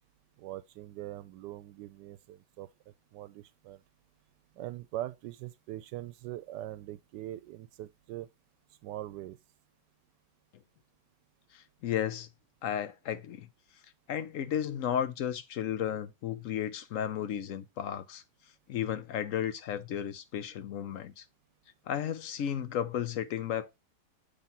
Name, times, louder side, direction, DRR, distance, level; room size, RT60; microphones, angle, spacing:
voice 1, 0.4-2.7 3.1-3.8 4.6-8.3 8.8-9.4, right 14 dB, 85° right, 1.2 m, -42 dB
voice 2, 11.5-12.3 12.6-13.5 14.1-18.2 18.7-21.2 21.9-23.8, left 9 dB, 60° left, 0.9 m, -34 dB
7.5 x 3.6 x 3.9 m
omnidirectional pair, 1.8 m